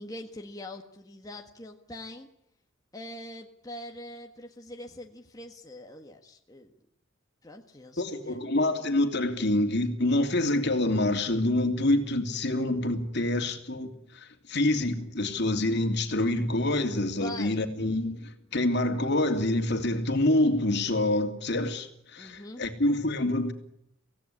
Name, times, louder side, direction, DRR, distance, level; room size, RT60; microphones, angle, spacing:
voice 1, 0.0-2.3 2.9-6.7 7.4-8.4 17.2-17.6 22.2-22.6, left 1 dB, 15° left, 1.6 m, -43 dB
voice 2, 8.0-23.5, left 1 dB, 55° left, 2.8 m, -26 dB
25.5 x 17.0 x 9.9 m
head